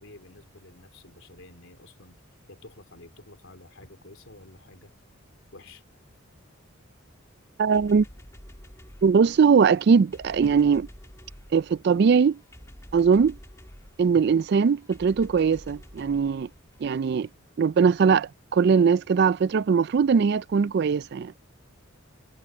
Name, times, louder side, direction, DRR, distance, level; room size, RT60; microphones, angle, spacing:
voice 1, 0.0-2.2 2.5-4.9 5.5-5.8, left 2 dB, 65° left, 3.4 m, -50 dB
voice 2, 7.6-8.1 9.0-10.9 11.5-12.4 12.9-13.4 14.0-16.5 16.8-17.3 17.6-21.3, right 6 dB, 50° right, 0.3 m, -21 dB
sound 1, 7.7-17.3, equal, 15° left, 2.1 m, -49 dB
head